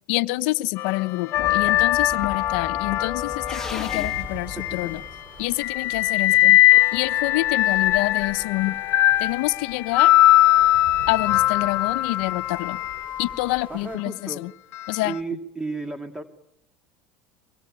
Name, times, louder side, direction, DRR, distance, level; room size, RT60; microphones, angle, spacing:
voice 1, 0.1-5.0 5.4-6.6 6.9-8.8 9.2-10.1 11.1-12.8 13.2-14.5 14.9-15.2, left 20 dB, 75° left, 12 dB, 1.0 m, -27 dB
sound 1, 0.8-5.1 5.6-13.7 14.7-15.0, left 15 dB, 55° left, 1.3 m, -21 dB
sound 2, 1.3-5.6, left 3 dB, 10° left, 2.0 m, -38 dB
sound 3, 3.3-14.0, right 5 dB, 35° right, 3.3 m, -46 dB
voice 2, 13.7-14.4 15.0-16.2, right 3 dB, 10° right, 7 dB, 2.5 m, -33 dB
24.5 x 21.5 x 8.8 m, 0.83 s
supercardioid pair, 110°, 5 cm